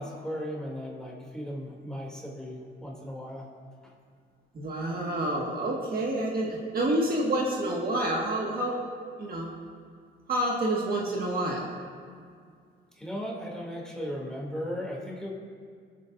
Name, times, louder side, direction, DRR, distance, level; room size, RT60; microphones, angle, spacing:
voice 1, 0.0-3.5 12.9-15.3, equal, 5° left, -4 dB, 2.6 m, -36 dB
voice 2, 4.5-8.8 9.2-9.5 10.3-11.7, right 1 dB, 50° right, -2 dB, 1.6 m, -28 dB
20.5 x 8.4 x 2.6 m, 2.1 s
cardioid pair, 90°, 20 cm